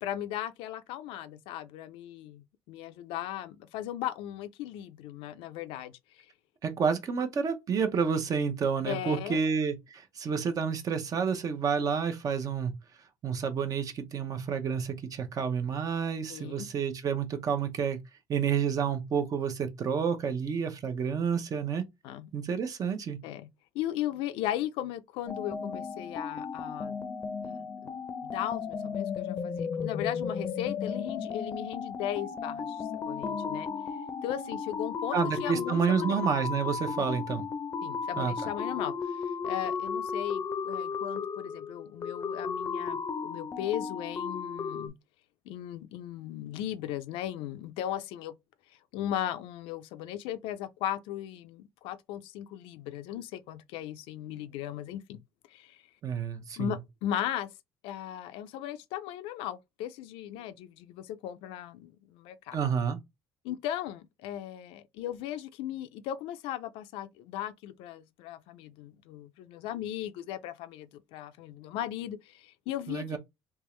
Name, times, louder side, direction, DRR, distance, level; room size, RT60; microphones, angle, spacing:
voice 1, 0.0-6.3 8.9-9.4 16.3-16.7 22.0-22.3 23.2-23.5 23.7-27.0 27.4-28.0 28.2-33.7 34.2-36.1 37.0-37.1 37.8-44.9 45.5-48.3 48.7-55.2 55.5-55.8 56.6-57.5 57.8-62.6 63.4-73.2, left 12 dB, 85° left, 0.5 m, -37 dB
voice 2, 6.6-12.7 13.2-18.0 18.3-21.9 22.3-23.2 35.1-37.5 38.2-38.3 56.0-56.7 62.5-63.0 72.9-73.2, right 6 dB, 40° right, 0.8 m, -29 dB
sound 1, 25.3-44.9, left 6 dB, 30° left, 0.6 m, -35 dB
3.5 x 2.9 x 3.1 m
cardioid pair, 120°, 9 cm